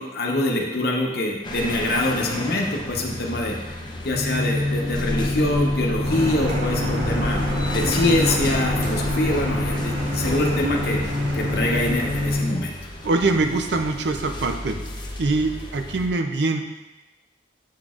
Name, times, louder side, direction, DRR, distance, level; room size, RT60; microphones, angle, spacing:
voice 1, 0.0-3.7 4.0-7.4 7.7-11.0 11.3-12.7, left 1 dB, 55° left, 0 dB, 0.8 m, -24 dB
sound 1, 1.4-16.1, left 1 dB, 25° left, 0.5 m, -35 dB
sound 2, 4.1-12.7, left 2 dB, 85° left, 0.9 m, -26 dB
Car, 6.0-12.3, right 1 dB, 90° right, 1.7 m, -29 dB
voice 2, 13.0-14.8 15.2-16.6, right 3 dB, 70° right, 6 dB, 0.5 m, -23 dB
6.5 x 6.1 x 2.4 m, 1.1 s
head